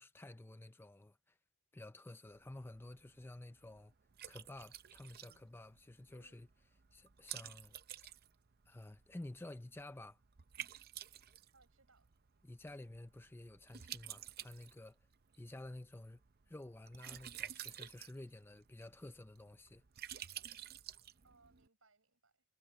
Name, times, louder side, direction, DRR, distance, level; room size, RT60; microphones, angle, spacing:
voice 1, 0.0-1.4 1.7-3.9 4.3-6.5 6.9-7.8 8.7-10.2 12.4-15.0 15.4-16.2 16.5-19.8, left 1 dB, 10° left, 0.4 m, -52 dB
Liquid, 2.2-21.7, right 11 dB, 45° right, 0.6 m, -52 dB
voice 2, 6.1-6.5 11.5-12.1 15.6-15.7 21.2-22.4, right 3 dB, 65° right, 6.9 m, -70 dB
head